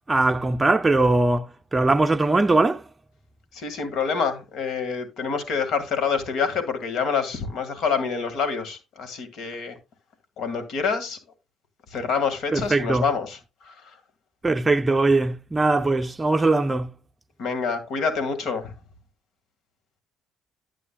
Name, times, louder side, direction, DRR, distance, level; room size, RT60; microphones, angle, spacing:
voice 1, 0.1-2.8 12.5-13.1 14.4-16.9, right 2 dB, 20° right, 0.5 m, -21 dB
voice 2, 3.5-9.8 10.4-11.2 11.9-14.0 17.4-18.7, left 5 dB, 65° left, 1.9 m, -27 dB
11.0 x 7.5 x 2.3 m
supercardioid pair, 75°, 0 cm